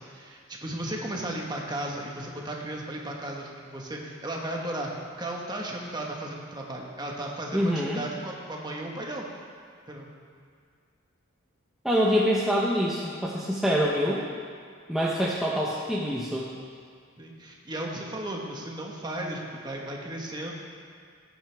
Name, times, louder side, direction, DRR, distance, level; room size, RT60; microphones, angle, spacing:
voice 1, 0.0-9.3 9.9-10.1 14.1-14.3 17.2-20.5, right 1 dB, 20° right, -1 dB, 1.3 m, -35 dB
voice 2, 7.5-8.0 11.8-14.2 14.9-16.5, equal, ahead, -6 dB, 0.9 m, -25 dB
16.5 x 9.2 x 3.5 m, 2.1 s
head